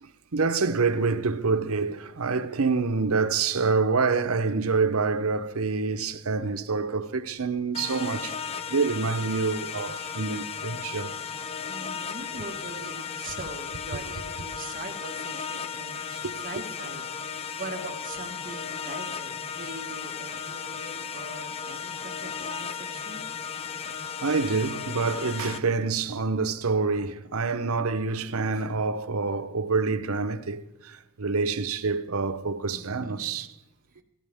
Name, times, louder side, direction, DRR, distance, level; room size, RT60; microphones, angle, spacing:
voice 1, 0.0-8.4 8.7-11.1 16.1-16.3 24.2-33.5, right 4 dB, 75° right, 0.8 m, -27 dB
sound 1, 7.7-25.6, left 6 dB, 25° left, 0.6 m, -35 dB
voice 2, 11.7-16.0 16.4-17.0 17.6-23.3 32.7-33.4 34.0-34.1, right 3 dB, 40° right, 1.7 m, -42 dB
17.0 x 14.5 x 3.6 m
head